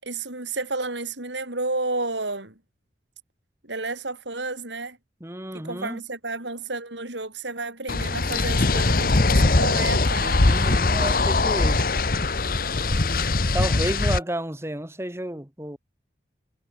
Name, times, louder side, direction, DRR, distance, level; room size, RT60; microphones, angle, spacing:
voice 1, 0.0-2.6 3.6-5.0 5.5-10.4, right 3 dB, 85° right, 6.9 m, -31 dB
voice 2, 5.2-6.0 10.2-11.9 13.5-15.8, right 1 dB, 15° right, 1.5 m, -31 dB
sound 1, 7.9-14.2, left 3 dB, 50° left, 1.1 m, -21 dB
head